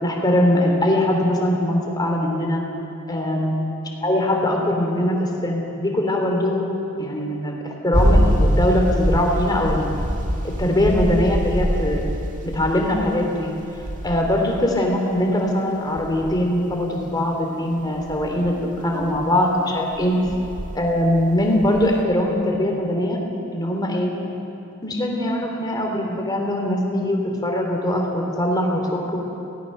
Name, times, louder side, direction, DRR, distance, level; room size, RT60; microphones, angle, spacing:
voice 1, 0.0-2.6 3.1-3.7 4.0-6.6 7.0-9.9 10.4-12.0 12.4-13.5 14.0-20.2 20.7-23.2 23.5-24.1 24.8-29.2, left 1 dB, 20° left, 0 dB, 2.9 m, -21 dB
sound 1, 7.9-13.1 13.7-14.8 16.0-17.1 18.0-19.3 19.9-20.8 21.3-22.0, equal, 35° right, 1.9 m, -24 dB
23.0 x 17.5 x 6.6 m, 3.0 s
head